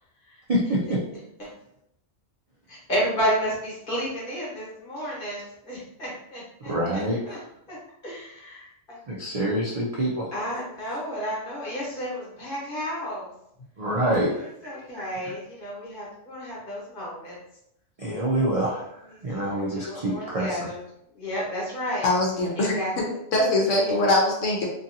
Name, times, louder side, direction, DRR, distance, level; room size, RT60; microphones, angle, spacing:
voice 1, 0.5-1.0 6.6-7.4 9.1-10.3 13.8-15.3 18.0-20.7, right 1 dB, 70° right, -4 dB, 0.3 m, -27 dB
voice 2, 2.7-7.4 7.7-7.8 8.0-9.0 10.3-13.3 14.4-17.4 19.1-20.8 21.1-22.1 22.6-22.9, equal, 45° left, -6 dB, 1.3 m, -32 dB
voice 3, 22.0-23.0 23.3-24.7, left 2 dB, 70° left, -2 dB, 1.1 m, -22 dB
2.9 x 2.6 x 2.7 m, 0.78 s
omnidirectional pair, 1.4 m